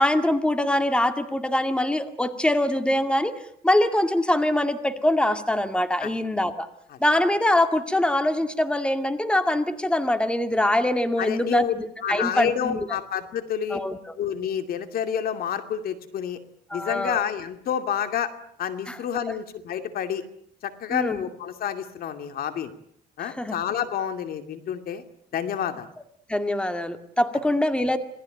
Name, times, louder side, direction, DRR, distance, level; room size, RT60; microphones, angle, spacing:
voice 1, 0.0-3.4 3.6-6.7 7.0-12.9 13.7-14.0 16.7-17.2 18.9-19.0 20.9-21.2 23.2-23.6 26.3-28.0, left 1 dB, 5° left, 9 dB, 2.1 m, -23 dB
voice 2, 11.2-11.7 12.0-13.8 14.2-16.4 16.7-18.3 18.6-20.2 20.6-22.7 23.2-25.0 25.3-25.9, left 8 dB, 60° left, 9 dB, 2.5 m, -29 dB
27.0 x 18.5 x 9.1 m, 0.67 s
cardioid pair, 110°, 17 cm